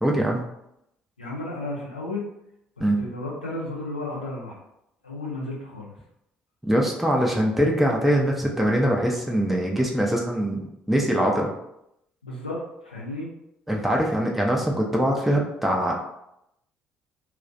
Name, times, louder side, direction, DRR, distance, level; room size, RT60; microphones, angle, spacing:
voice 1, 0.0-0.4 2.8-3.1 6.6-11.5 13.7-16.0, equal, 5° right, -1 dB, 0.5 m, -23 dB
voice 2, 1.2-2.2 2.8-4.6 5.0-5.9 12.2-13.3, left 2 dB, 90° left, -4 dB, 0.5 m, -33 dB
2.4 x 2.1 x 2.5 m, 0.81 s
figure-of-eight pair, 50°, 5 cm